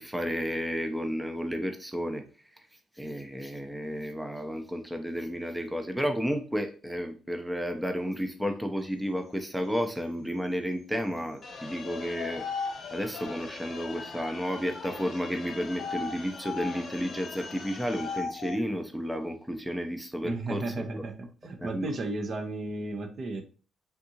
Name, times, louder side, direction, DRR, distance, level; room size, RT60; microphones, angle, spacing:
voice 1, 0.0-2.2 3.0-12.5 12.9-21.1 21.6-21.9, equal, 5° right, 6 dB, 0.5 m, -32 dB
sound 1, 11.4-18.2, left 3 dB, 40° left, 0.9 m, -43 dB
sound 2, 11.8-15.2 15.7-18.6, left 5 dB, 80° left, 0.4 m, -39 dB
voice 2, 20.2-23.4, right 2 dB, 50° right, 6 dB, 0.6 m, -34 dB
3.5 x 2.7 x 2.7 m, 0.36 s
cardioid pair, 90°, 0 cm